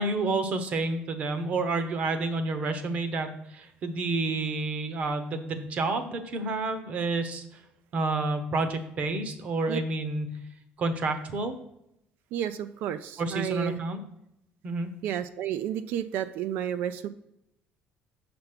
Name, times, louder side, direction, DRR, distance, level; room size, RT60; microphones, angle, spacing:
voice 1, 0.0-7.4 7.9-10.3 10.8-11.5 13.2-14.0 14.6-14.9, right 3 dB, 40° right, 9 dB, 1.0 m, -29 dB
voice 2, 12.3-13.8 15.0-17.1, right 10 dB, 65° right, 11 dB, 0.5 m, -31 dB
7.0 x 5.2 x 5.9 m, 0.81 s
cardioid pair, 155°, 4 cm